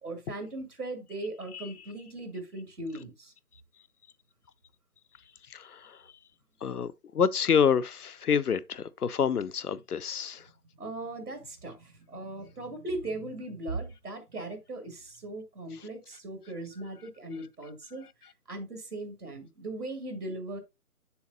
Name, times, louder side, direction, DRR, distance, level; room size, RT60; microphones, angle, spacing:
voice 1, 0.0-3.3 10.8-18.1 18.5-20.6, right 2 dB, 85° right, 2.3 m, -38 dB
voice 2, 5.5-6.0 6.6-10.4, left 7 dB, 85° left, 0.6 m, -28 dB
6.9 x 6.9 x 2.6 m
figure-of-eight pair, 145°, 44 cm